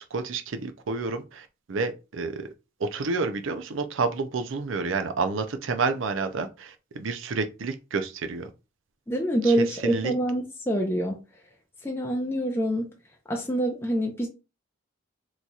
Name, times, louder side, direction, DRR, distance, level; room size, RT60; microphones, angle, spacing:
voice 1, 0.0-2.5 2.8-8.5 9.4-10.1, right 4 dB, 85° right, 0.5 m, -29 dB
voice 2, 9.1-11.2 11.8-12.9 13.3-14.3, right 1 dB, 10° left, 0.6 m, -26 dB
3.0 x 2.4 x 4.0 m
head